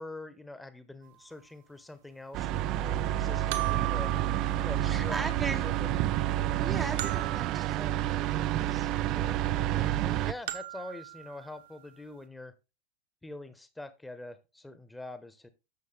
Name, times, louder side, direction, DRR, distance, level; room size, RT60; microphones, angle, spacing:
voice 1, 0.0-4.1 4.6-6.0 9.1-12.5 13.2-15.5, left 2 dB, 5° left, 1.1 m, -44 dB
sound 1, 1.1-1.2 3.5-5.4 7.0-8.6 10.5-11.9, right 17 dB, 55° right, 1.0 m, -39 dB
sound 2, 2.3-10.3, right 13 dB, 35° right, 0.4 m, -29 dB
voice 2, 4.8-5.7 6.6-8.9, right 3 dB, 10° right, 0.8 m, -38 dB
10.5 x 7.1 x 3.4 m
figure-of-eight pair, 90°, 0 cm